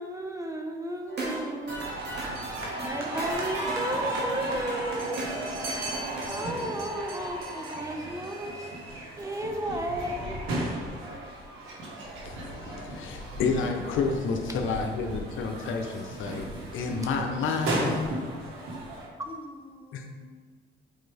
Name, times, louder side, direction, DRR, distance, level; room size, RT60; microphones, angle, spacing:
voice 1, 0.0-1.9 2.8-5.2 6.3-10.7 11.7-11.8 19.2-19.3, right 1 dB, 15° right, 3 dB, 0.8 m, -34 dB
sound 1, 1.1-6.2, right 1 dB, 60° right, 2.1 m, -37 dB
sound 2, 1.7-19.1, right 1 dB, 90° right, 1.5 m, -35 dB
voice 2, 2.4-3.4 19.2-20.2, left 2 dB, 25° left, 1 dB, 1.2 m, -48 dB
Scratching (performance technique), 9.2-11.3 11.6-13.2, right 2 dB, 75° right, 1.8 m, -49 dB
voice 3, 12.2-16.5 16.7-18.4 19.9-20.0, left 4 dB, 80° left, 3 dB, 0.8 m, -30 dB
9.1 x 4.3 x 3.4 m, 1.5 s
cardioid pair, 90°, 20 cm